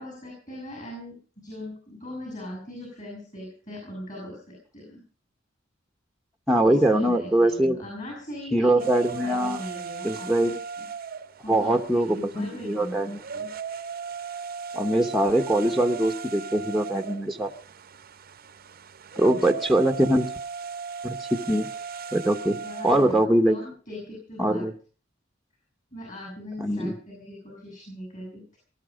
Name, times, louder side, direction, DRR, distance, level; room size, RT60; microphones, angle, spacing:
voice 1, 0.0-5.0 6.6-10.9 11.4-13.5 22.6-23.2 23.5-24.6 25.9-28.6, left 1 dB, 40° left, 0 dB, 7.2 m, -40 dB
voice 2, 6.5-7.8 8.5-9.6 10.0-10.5 11.5-13.2 14.7-17.5 19.2-20.3 21.0-21.7 22.1-22.6 22.8-23.6 24.4-24.7 26.6-27.0, right 1 dB, ahead, 6 dB, 0.9 m, -22 dB
sound 1, 8.8-23.2, right 5 dB, 50° right, 0.7 m, -37 dB
19.5 x 12.5 x 5.0 m, 0.40 s
head